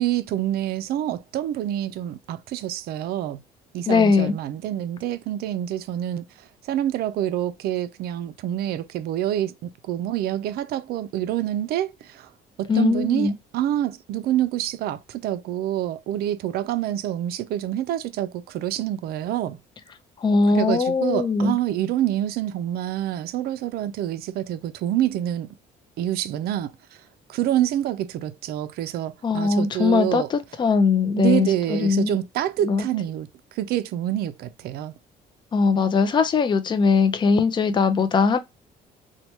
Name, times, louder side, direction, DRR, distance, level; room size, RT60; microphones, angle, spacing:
voice 1, 0.0-3.4 3.7-12.3 12.6-19.6 20.5-25.5 26.0-26.7 27.3-30.3 31.2-34.9, right 12 dB, 65° right, 0.4 m, -27 dB
voice 2, 3.9-4.3 12.7-13.3 20.2-21.5 29.2-30.2 30.6-32.1 32.6-32.8 35.5-38.4, left 5 dB, 25° left, 0.4 m, -20 dB
3.0 x 2.2 x 2.7 m
cardioid pair, 110°, 17 cm